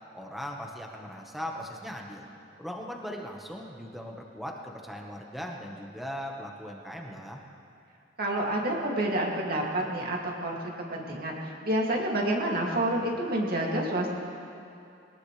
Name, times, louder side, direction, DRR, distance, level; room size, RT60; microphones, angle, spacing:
voice 1, 0.1-2.3 2.6-7.4, equal, ahead, 0 dB, 1.3 m, -39 dB
voice 2, 8.2-10.6 10.9-14.1, right 1 dB, 50° right, -2 dB, 2.5 m, -28 dB
21.5 x 19.5 x 3.3 m, 2.6 s
head